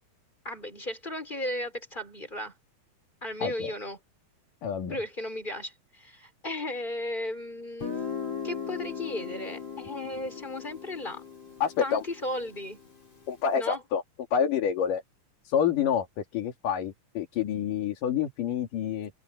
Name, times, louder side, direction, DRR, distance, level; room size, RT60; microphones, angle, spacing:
voice 1, 0.4-2.5 3.2-4.0 4.9-7.9 8.4-11.2 11.8-12.8 13.6-13.8, left 1 dB, 15° left, 6.1 m, -35 dB
voice 2, 3.4-3.7 4.6-5.0 11.6-12.0 13.3-14.0 14.3-15.0 15.5-19.1, left 8 dB, 85° left, 4.0 m, -28 dB
Guitar, 7.8-13.4, left 7 dB, 45° left, 8.3 m, -38 dB
open air
omnidirectional pair, 3.7 m